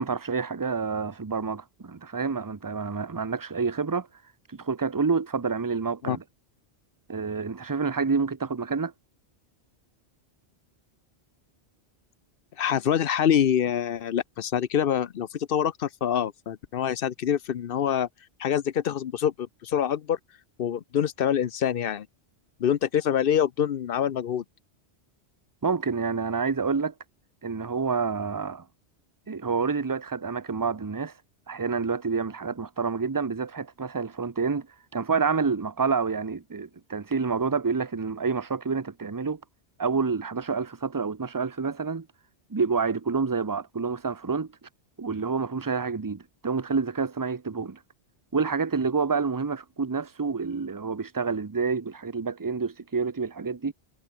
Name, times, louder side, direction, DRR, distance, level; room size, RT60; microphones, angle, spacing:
voice 1, 0.0-4.1 4.5-6.2 7.1-8.9 25.6-26.9 27.4-28.6 29.3-31.1 31.5-34.7 34.9-39.4 39.8-42.1 42.5-44.5 45.0-47.8 48.3-53.7, right 5 dB, 20° right, 0.7 m, -28 dB
voice 2, 12.6-18.1 18.4-20.2 20.6-22.1 22.6-24.4, left 9 dB, 60° left, 0.9 m, -25 dB
omnidirectional pair, 1.1 m